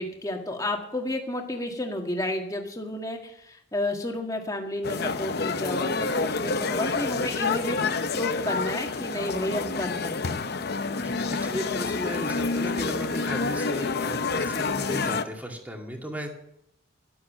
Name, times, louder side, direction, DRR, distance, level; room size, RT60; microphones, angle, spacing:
voice 1, 0.0-10.4, left 1 dB, 20° left, 2 dB, 1.9 m, -31 dB
sound 1, 4.8-15.2, left 4 dB, 55° left, 0.8 m, -28 dB
voice 2, 10.9-16.3, equal, 10° right, 2 dB, 2.2 m, -35 dB
12.5 x 11.5 x 7.5 m, 0.78 s
head